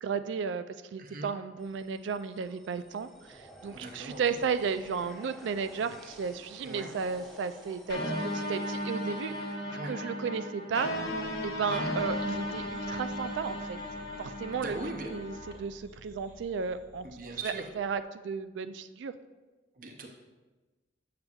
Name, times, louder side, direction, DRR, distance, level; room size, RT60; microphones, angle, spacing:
voice 1, 0.0-10.9 11.4-13.8 14.2-14.8 15.1-17.1 17.4-19.1, right 5 dB, 90° right, 12 dB, 0.3 m, -34 dB
voice 2, 1.0-1.3 3.7-4.4 6.6-6.9 9.7-9.9 11.7-11.9 14.5-15.1 17.0-17.6 19.8-20.1, right 2 dB, 50° right, 3 dB, 0.6 m, -40 dB
sound 1, 1.6-9.5, equal, ahead, 0.7 m, -53 dB
sound 2, 7.9-15.5, equal, 70° left, 1.1 m, -35 dB
sound 3, 10.8-18.0, equal, 65° right, 1.9 m, -54 dB
7.0 x 6.6 x 2.3 m, 1.2 s
head